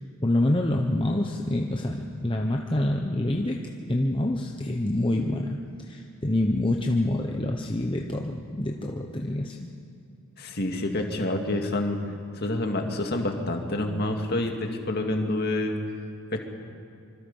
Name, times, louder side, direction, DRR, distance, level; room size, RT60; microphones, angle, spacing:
voice 1, 0.0-9.7, left 1 dB, 20° left, 1 dB, 0.9 m, -27 dB
voice 2, 10.4-12.0 12.4-15.8 16.3-16.4, left 1 dB, 45° left, 3 dB, 2.2 m, -27 dB
25.5 x 25.0 x 5.5 m, 2.5 s
head